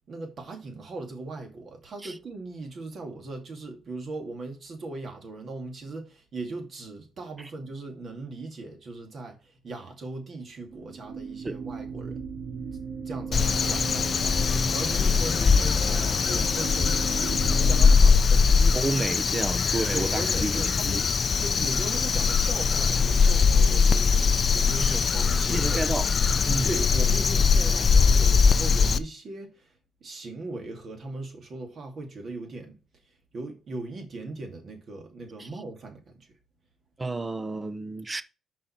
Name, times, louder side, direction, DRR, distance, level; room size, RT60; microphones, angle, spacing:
voice 1, 0.1-12.2 13.0-18.8 19.9-26.1 26.6-32.8 33.0-36.3, right 2 dB, 50° right, 2.5 m, -39 dB
sound 1, 10.7-18.0, right 5 dB, 85° right, 3.7 m, -37 dB
Crow, 13.3-29.0, left 5 dB, 45° left, 0.5 m, -22 dB
voice 2, 18.7-21.0 21.5-21.7 24.8-25.0 25.5-26.1 26.5-26.7 35.4-35.5 37.0-38.2, right 2 dB, 25° right, 0.7 m, -31 dB
5.5 x 5.3 x 5.9 m
cardioid pair, 90°, 0 cm